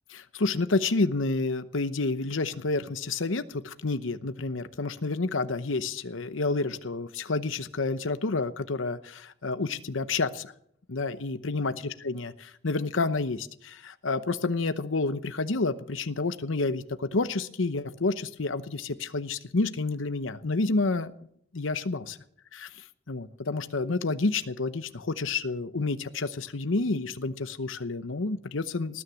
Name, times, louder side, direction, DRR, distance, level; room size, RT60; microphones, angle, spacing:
voice 1, 0.1-10.5 10.9-21.1 21.5-22.2 22.5-22.7 23.1-29.0, left 3 dB, 75° left, 11 dB, 0.9 m, -29 dB
19.0 x 9.8 x 7.2 m, 0.68 s
head